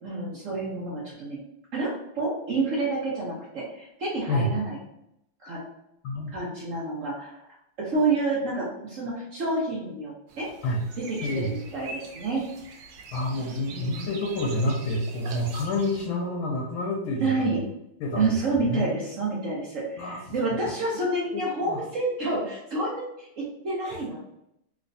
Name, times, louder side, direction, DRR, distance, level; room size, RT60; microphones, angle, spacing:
voice 1, 0.0-1.4 1.7-4.8 5.4-5.6 6.3-7.4 7.8-10.5 11.0-12.5 13.7-14.1 17.2-17.6 18.2-24.2, right 3 dB, 85° right, -5 dB, 0.6 m, -29 dB
sound 1, 10.3-16.0, right 3 dB, 70° right, 1.2 m, -43 dB
voice 2, 13.1-17.6 18.0-18.9 20.0-20.2 20.7-20.8 21.3-21.8 23.9-24.0, left 1 dB, 75° left, -1 dB, 1.4 m, -28 dB
3.1 x 3.1 x 2.6 m, 0.80 s
omnidirectional pair, 2.4 m